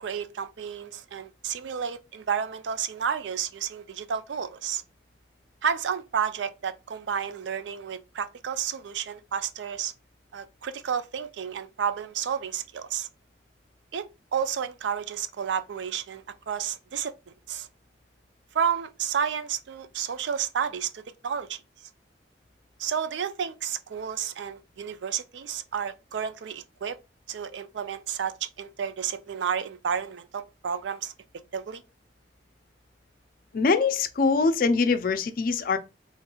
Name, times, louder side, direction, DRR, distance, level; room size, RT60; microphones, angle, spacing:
voice 1, 0.0-4.8 5.6-9.9 10.3-13.1 13.9-14.1 14.3-17.1 17.5-17.7 18.5-21.6 22.8-27.0 27.3-31.1 31.5-31.8, right 7 dB, 80° right, 0.4 m, -31 dB
voice 2, 33.5-35.8, left 4 dB, 50° left, 0.4 m, -23 dB
3.1 x 3.0 x 2.2 m
head